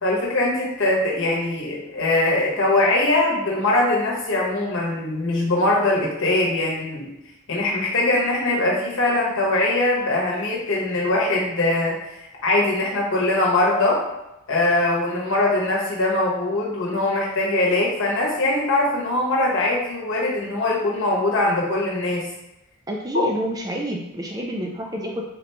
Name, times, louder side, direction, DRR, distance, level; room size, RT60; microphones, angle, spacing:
voice 1, 0.0-7.1 7.5-12.0 12.4-14.0 14.5-22.3, left 2 dB, 55° left, -3 dB, 1.0 m, -21 dB
voice 2, 22.9-25.2, equal, 15° right, 0 dB, 0.3 m, -28 dB
3.8 x 2.9 x 3.3 m, 0.93 s
head